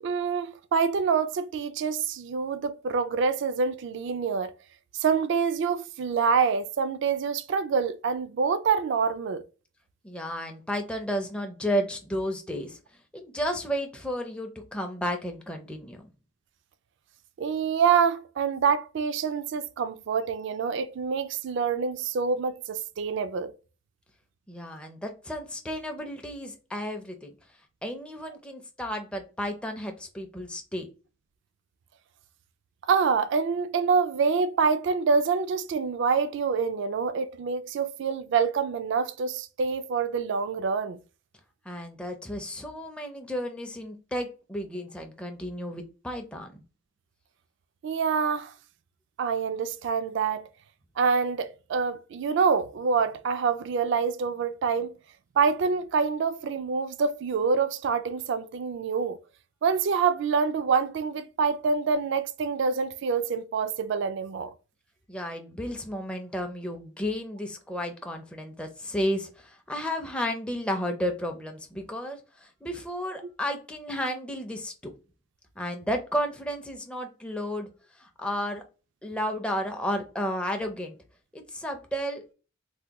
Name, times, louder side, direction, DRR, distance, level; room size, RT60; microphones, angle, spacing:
voice 1, 0.0-4.5 4.9-9.4 17.4-23.5 32.9-41.0 47.8-48.5 49.2-50.5 51.0-54.9 55.4-59.2 59.6-64.5, right 5 dB, 65° right, 0.3 m, -26 dB
voice 2, 10.0-12.8 13.1-16.1 24.5-27.3 27.8-30.9 41.7-46.6 65.1-74.9 75.6-77.7 78.0-78.6 79.0-81.0 81.3-82.3, equal, 5° left, 0.4 m, -32 dB
3.4 x 2.2 x 2.8 m
head